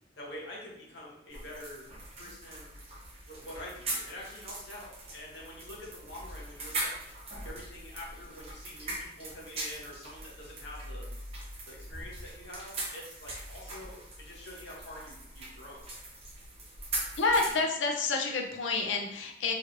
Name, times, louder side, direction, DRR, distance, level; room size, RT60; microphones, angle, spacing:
voice 1, 0.2-1.9 2.2-2.7 3.2-7.0 7.4-11.1 11.7-15.9, left 1 dB, 65° left, -3 dB, 0.9 m, -46 dB
sound 1, 1.3-17.5, right 2 dB, 35° right, 0.8 m, -41 dB
voice 2, 17.2-19.5, left 3 dB, 85° left, 2 dB, 0.6 m, -29 dB
3.1 x 2.9 x 2.5 m, 0.78 s
head